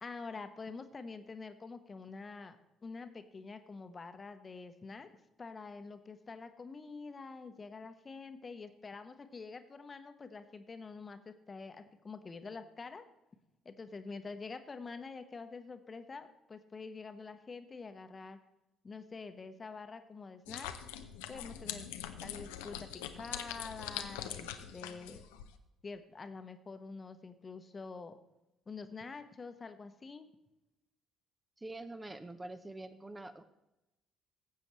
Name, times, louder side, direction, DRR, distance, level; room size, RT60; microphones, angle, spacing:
voice 1, 0.0-2.6 2.8-5.1 5.4-13.0 13.6-18.4 18.8-20.7 21.3-21.9 22.2-25.2 25.8-28.2 28.7-30.3, left 4 dB, 30° left, 9 dB, 1.0 m, -46 dB
sound 1, 20.5-25.5, left 10 dB, 70° left, 0.6 m, -43 dB
voice 2, 31.6-33.4, right 2 dB, 15° right, 10 dB, 0.7 m, -45 dB
15.0 x 7.6 x 3.1 m, 0.93 s
figure-of-eight pair, 50°, 0 cm